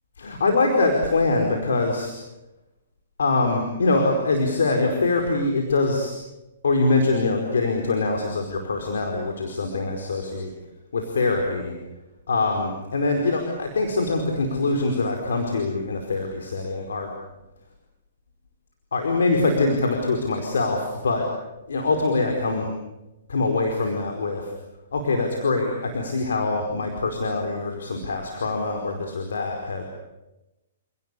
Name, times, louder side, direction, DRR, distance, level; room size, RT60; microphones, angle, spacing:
voice 1, 0.2-2.1 3.2-6.1 6.6-10.5 10.9-11.7 12.3-17.1 18.9-21.2 21.7-22.7 23.3-24.5 24.9-29.8, left 3 dB, 90° left, 3 dB, 4.8 m, -23 dB
29.0 x 19.0 x 8.5 m, 0.96 s
hypercardioid pair, 145°, 0 cm